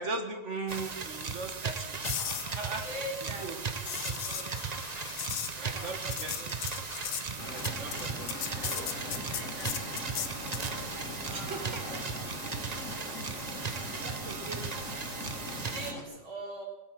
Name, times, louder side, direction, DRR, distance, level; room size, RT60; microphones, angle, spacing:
voice 1, 0.0-2.0 2.6-2.9 3.4-3.6 5.6-6.5 7.4-8.3 11.3-12.0 13.3-13.5, right 3 dB, 40° right, 5 dB, 1.8 m, -38 dB
sound 1, 0.7-15.9, right 5 dB, 60° right, 0.4 m, -37 dB
sound 2, 2.0-10.7 14.9-15.1, left 8 dB, 75° left, 1.8 m, -38 dB
voice 2, 2.8-3.5 3.8-4.5 5.6-5.9 6.2-6.5 7.8-8.1 8.6-9.8 11.2-12.8 14.0-14.7 15.6-16.7, right 1 dB, 85° right, -3 dB, 4.4 m, -44 dB
sound 3, 7.4-16.0, left 1 dB, 40° left, 3.2 m, -41 dB
20.0 x 8.1 x 7.6 m, 1.1 s
omnidirectional pair, 2.2 m